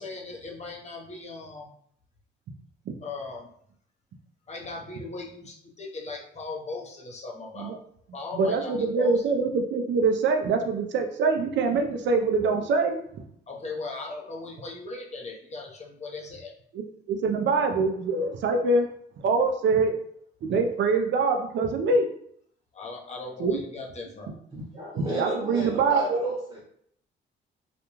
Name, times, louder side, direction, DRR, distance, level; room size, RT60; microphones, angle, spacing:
voice 1, 0.0-1.7 3.0-3.5 4.5-7.7 8.1-9.2 13.5-16.5 22.7-24.3, left 3 dB, 35° left, 0 dB, 0.7 m, -38 dB
voice 2, 8.3-13.0 16.7-18.8 19.2-19.9 20.4-22.1 23.4-23.6 24.6-24.7 25.2-26.3, right 4 dB, 65° right, 4 dB, 0.5 m, -24 dB
voice 3, 24.5-26.6, equal, 25° right, -6 dB, 0.9 m, -34 dB
2.4 x 2.2 x 3.0 m, 0.66 s
cardioid pair, 90°, 20 cm